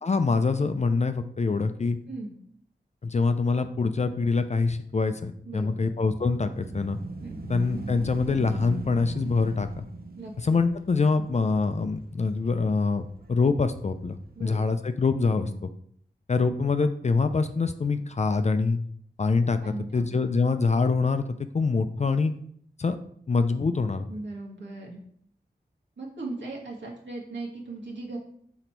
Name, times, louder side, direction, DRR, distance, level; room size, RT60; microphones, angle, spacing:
voice 1, 0.0-2.0 3.0-7.0 7.5-9.8 10.4-15.5 16.3-18.8 19.2-19.6 19.9-21.2 21.5-22.3 22.8-23.0 23.3-24.0, left 4 dB, 40° left, 9 dB, 0.4 m, -25 dB
voice 2, 5.5-5.9 7.2-7.4 10.2-10.3 14.4-14.8 15.4-15.6 19.6-20.0 24.1-25.0 26.0-28.2, right 2 dB, 85° right, -3 dB, 1.7 m, -38 dB
sound 1, 6.0-14.9, right 3 dB, 55° right, 0.6 m, -41 dB
6.0 x 4.0 x 4.5 m, 0.64 s
wide cardioid pair, 95°, 18 cm